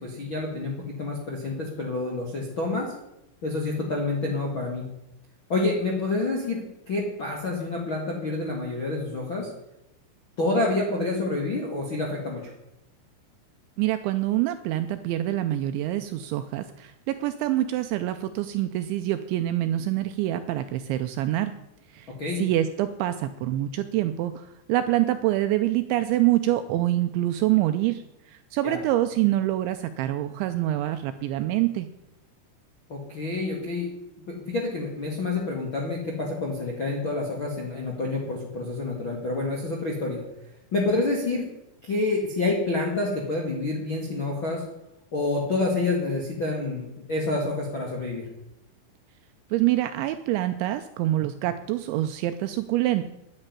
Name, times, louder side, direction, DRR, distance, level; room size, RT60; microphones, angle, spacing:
voice 1, 0.0-2.9 3.4-4.8 5.5-9.5 10.4-12.5 22.2-22.4 28.6-28.8 32.9-33.9 34.5-40.2 40.7-41.5 41.8-44.6 45.1-48.3, left 2 dB, 55° left, -2 dB, 1.4 m, -28 dB
voice 2, 13.8-21.5 21.9-22.1 22.4-28.0 28.3-31.9 49.5-53.1, right 14 dB, 80° right, 9 dB, 2.7 m, -26 dB
10.0 x 10.0 x 9.7 m, 0.87 s
omnidirectional pair, 5.9 m